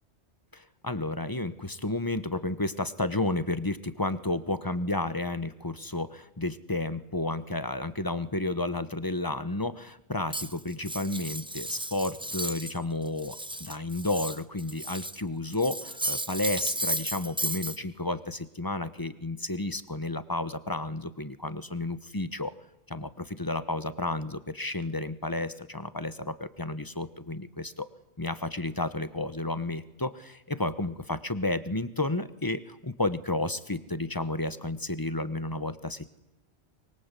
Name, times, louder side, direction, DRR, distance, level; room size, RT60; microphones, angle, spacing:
voice 1, 0.5-22.5 22.9-27.9 28.2-36.2, left 2 dB, 20° left, 12 dB, 1.2 m, -32 dB
Cutlery silverware, 10.3-12.8 13.1-15.2 15.5-17.8, right 1 dB, 5° right, 0.7 m, -34 dB
24.0 x 23.0 x 8.4 m, 0.89 s
omnidirectional pair, 1.1 m